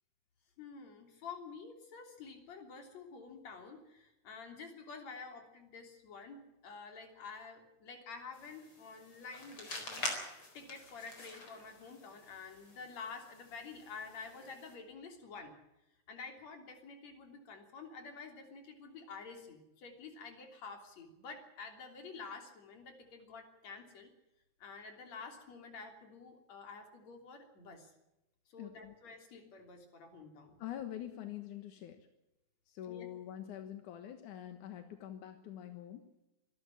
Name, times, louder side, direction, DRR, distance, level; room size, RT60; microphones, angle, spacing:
voice 1, 0.6-10.1 10.5-15.6 16.1-24.1 24.6-27.9 28.5-30.6 32.9-33.1, left 4 dB, 65° left, 4 dB, 4.4 m, -49 dB
sound 1, 8.3-14.7, left 2 dB, 45° left, 5.1 m, -46 dB
voice 2, 28.6-28.9 30.6-32.1 32.7-36.0, left 11 dB, 85° left, 7 dB, 2.9 m, -45 dB
25.0 x 13.0 x 8.7 m, 0.91 s
omnidirectional pair, 3.4 m